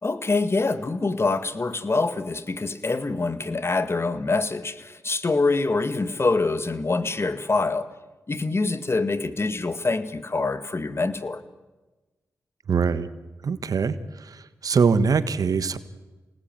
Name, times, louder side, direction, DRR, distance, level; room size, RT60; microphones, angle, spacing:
voice 1, 0.0-7.9 8.3-11.4, left 3 dB, 40° left, 12 dB, 2.1 m, -25 dB
voice 2, 12.7-13.1 13.4-14.0 14.6-15.8, right 5 dB, 65° right, 13 dB, 1.5 m, -22 dB
27.0 x 19.0 x 9.2 m, 1.2 s
supercardioid pair, 40°, 7 cm